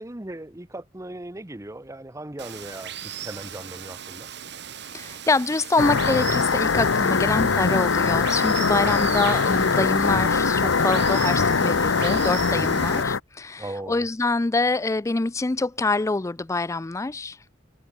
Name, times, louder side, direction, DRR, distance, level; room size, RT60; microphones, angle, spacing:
voice 1, 0.0-4.3 8.8-9.1 12.5-13.0 13.6-14.1, right 1 dB, 15° right, 0.9 m, -38 dB
Water, 2.4-13.0, right 9 dB, 60° right, 2.4 m, -37 dB
voice 2, 4.9-17.4, left 3 dB, 15° left, 0.4 m, -25 dB
sound 1, 5.8-13.2, left 5 dB, 80° left, 0.9 m, -22 dB
head